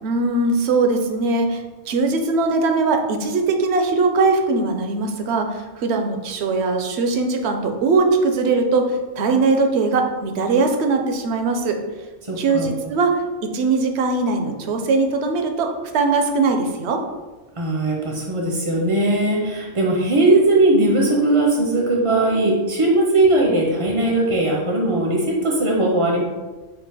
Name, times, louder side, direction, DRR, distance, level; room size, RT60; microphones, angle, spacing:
voice 1, 0.0-11.8 12.4-17.0, right 3 dB, 70° right, 4 dB, 0.8 m, -20 dB
voice 2, 12.3-12.7 17.6-26.2, right 2 dB, 35° right, -1 dB, 0.6 m, -19 dB
4.4 x 2.5 x 4.8 m, 1.2 s
omnidirectional pair, 1.2 m